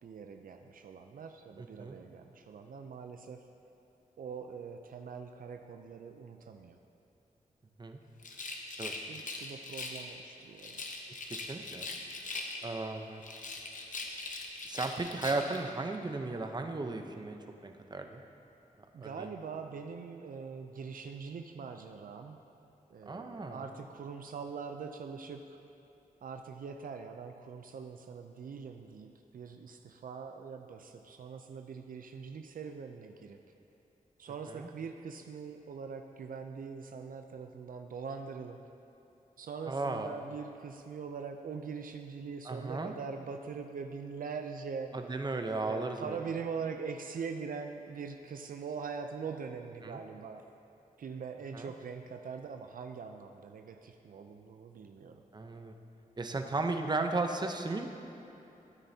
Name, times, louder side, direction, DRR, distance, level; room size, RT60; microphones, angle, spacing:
voice 1, 0.0-3.4 4.2-6.8 9.1-10.8 18.9-22.4 22.9-25.6 26.2-33.4 34.2-38.6 39.4-44.9 45.6-50.4 51.0-55.2, right 5 dB, 70° right, 5 dB, 0.5 m, -42 dB
voice 2, 1.6-2.0 7.8-8.0 8.8-8.9 11.2-11.9 12.6-13.2 14.6-18.2 19.0-19.3 23.1-23.6 34.5-34.7 39.7-40.1 42.4-42.9 44.9-46.2 49.8-50.0 51.5-51.7 55.3-55.7 56.2-57.9, right 3 dB, 30° right, 5 dB, 0.7 m, -35 dB
Rattle, 8.2-10.1 10.6-12.8 13.2-15.6, left 3 dB, 60° left, 1.0 m, -41 dB
13.0 x 9.2 x 2.8 m, 2.9 s
cardioid pair, 65°, 15 cm